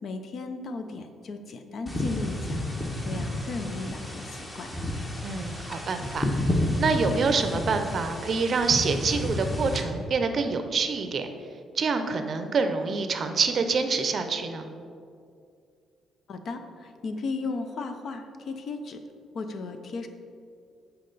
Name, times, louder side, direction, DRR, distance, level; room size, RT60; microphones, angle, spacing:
voice 1, 0.0-2.6 3.0-4.7 16.3-19.0 19.3-20.1, left 3 dB, 60° left, 7 dB, 0.5 m, -35 dB
sound 1, 1.9-9.8, left 1 dB, 20° left, 1.0 m, -31 dB
voice 2, 5.2-6.4 6.8-11.3 11.8-14.7, right 4 dB, 50° right, 7 dB, 0.5 m, -26 dB
7.5 x 4.1 x 3.9 m, 2.4 s
cardioid pair, 90°, 0 cm